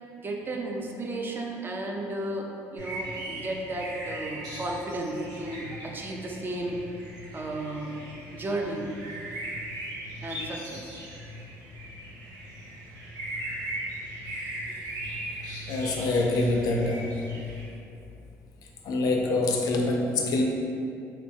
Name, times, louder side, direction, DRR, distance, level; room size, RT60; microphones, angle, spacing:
voice 1, 0.2-6.8 7.3-8.1 8.3-8.9 10.2-10.9 14.7-14.8, right 2 dB, 30° right, 0 dB, 0.4 m, -34 dB
sound 1, 2.8-17.7, right 1 dB, 65° right, 0.8 m, -38 dB
voice 2, 15.7-17.1 18.8-20.4, left 2 dB, 60° left, 1 dB, 0.4 m, -25 dB
3.0 x 2.1 x 2.6 m, 2.6 s
supercardioid pair, 75°, 7 cm